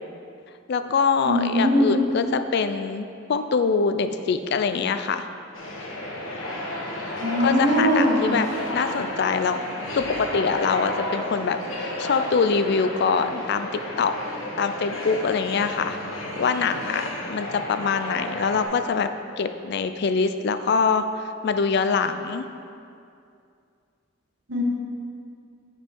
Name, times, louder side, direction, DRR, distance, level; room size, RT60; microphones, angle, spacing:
voice 1, 0.7-5.3 7.4-9.6 10.0-14.1 14.6-16.0 16.4-19.1 19.4-22.4, left 5 dB, 55° left, 9 dB, 0.4 m, -24 dB
voice 2, 1.2-2.0 7.2-8.4 24.5-24.6, equal, 75° right, -3 dB, 1.6 m, -21 dB
sound 1, 5.5-18.6, left 1 dB, 90° left, 1.3 m, -33 dB
8.9 x 5.3 x 4.5 m, 2.4 s
head